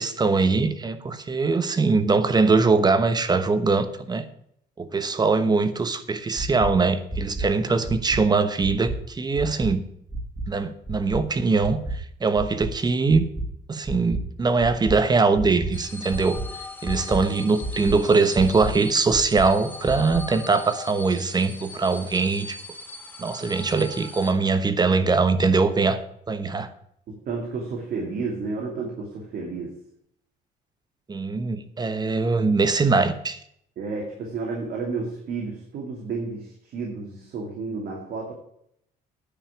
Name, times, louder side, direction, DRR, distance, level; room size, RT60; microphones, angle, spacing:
voice 1, 0.0-4.2 4.8-9.8 10.5-13.3 13.7-16.4 16.8-22.6 23.2-26.0 26.3-26.7 31.1-33.4, right 4 dB, 25° right, 11 dB, 1.1 m, -22 dB
sound 1, 6.4-6.7 7.1-7.4 7.8-8.2 8.6-8.9 9.3-9.7 10.1-10.4 10.8-11.2 11.6-11.9 12.3-12.7 13.1-13.4 13.8-14.2 14.6-14.9 15.3-15.7 16.1-16.4 16.8-17.2 17.6-17.9 18.3-18.7 19.1-19.4 19.8-20.2, right 3 dB, 5° right, 2.8 m, -30 dB
sound 2, 15.7-24.3, left 2 dB, 10° left, 1.9 m, -40 dB
voice 2, 27.1-29.7 33.8-38.3, right 4 dB, 60° right, -1 dB, 2.7 m, -31 dB
10.0 x 5.6 x 8.6 m, 0.70 s
cardioid pair, 110°, 17 cm